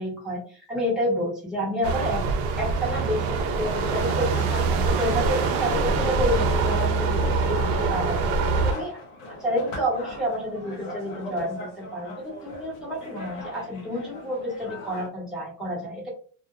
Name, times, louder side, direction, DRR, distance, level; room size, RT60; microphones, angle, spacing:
voice 1, 0.0-2.3 2.6-9.0 9.4-16.1, equal, ahead, -7 dB, 0.6 m, -29 dB
sound 1, 1.8-8.7, right 4 dB, 75° right, 0.6 m, -24 dB
sound 2, 3.3-15.1, left 2 dB, 40° left, 0.6 m, -39 dB
2.2 x 2.0 x 2.8 m, 0.43 s
cardioid pair, 180°, 45 cm